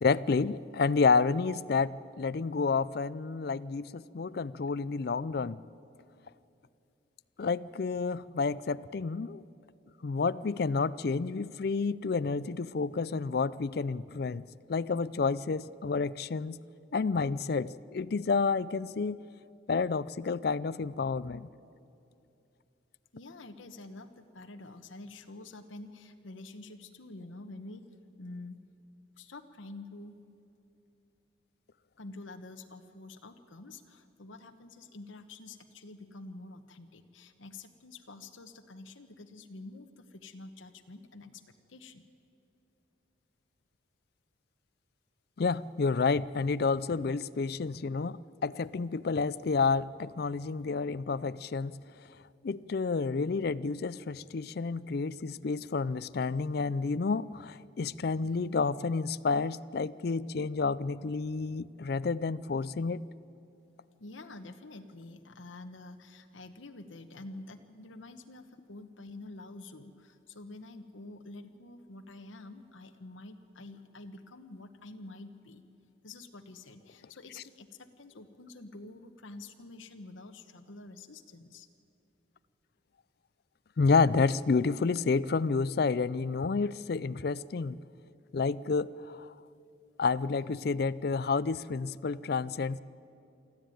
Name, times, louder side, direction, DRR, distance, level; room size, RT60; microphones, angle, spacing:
voice 1, 0.0-5.6 7.4-9.4 10.0-14.4 14.7-16.6 16.9-19.2 19.7-21.5 45.4-51.8 52.4-63.1 83.8-87.8 88.3-89.3 90.0-92.8, left 4 dB, 50° left, 19 dB, 0.4 m, -30 dB
voice 2, 23.1-27.8 28.2-28.6 29.2-30.2 32.0-41.4 41.7-42.0 64.0-75.6 76.0-81.7, left 2 dB, 85° left, 7 dB, 1.1 m, -48 dB
24.5 x 14.5 x 9.2 m, 2.7 s
head